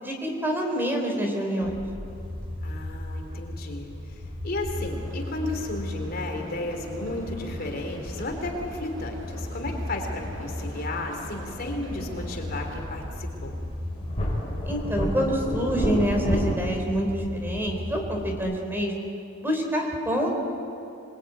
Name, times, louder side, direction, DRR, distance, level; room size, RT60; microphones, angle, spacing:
voice 1, 0.0-1.8 14.7-18.9 19.4-20.3, equal, 10° right, 2 dB, 3.9 m, -26 dB
sound 1, 1.6-18.3, left 1 dB, 35° right, 3.8 m, -36 dB
sound 2, 2.1-16.6, equal, 30° left, 4.4 m, -34 dB
voice 2, 2.6-13.5, left 2 dB, 45° left, 3 dB, 3.4 m, -34 dB
sound 3, 4.7-12.9, equal, 70° right, 5.1 m, -44 dB
27.0 x 21.5 x 9.3 m, 2.7 s
head